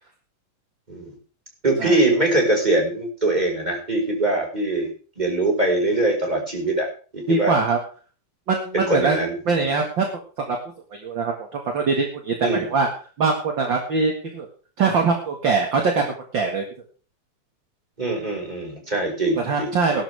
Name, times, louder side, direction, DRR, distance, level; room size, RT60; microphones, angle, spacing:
voice 1, 1.6-4.9 5.2-6.9 7.1-7.6 8.7-9.6 12.4-12.7 18.0-19.7, right 2 dB, 10° right, 0 dB, 4.8 m, -22 dB
voice 2, 7.3-7.8 8.5-9.2 9.5-10.1 10.5-10.6 10.9-12.3 12.7-12.9 13.2-14.5 14.8-16.1 16.3-16.6 19.4-20.0, right 4 dB, 40° right, 2 dB, 1.9 m, -22 dB
19.0 x 11.5 x 3.5 m, 0.38 s
omnidirectional pair, 4.3 m